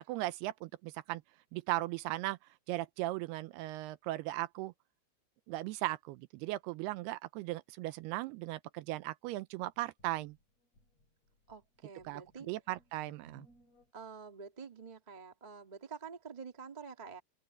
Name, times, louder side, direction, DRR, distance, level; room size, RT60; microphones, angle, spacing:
voice 1, 0.1-1.2 1.5-2.4 2.7-4.7 5.5-10.4 12.1-12.2 12.5-13.5, right 17 dB, 80° right, 2.5 m, -37 dB
sound 1, 9.7-13.9, left 1 dB, 40° left, 9.3 m, -65 dB
voice 2, 11.5-12.5 13.9-17.2, right 5 dB, 25° right, 0.9 m, -48 dB
open air
omnidirectional pair, 4.8 m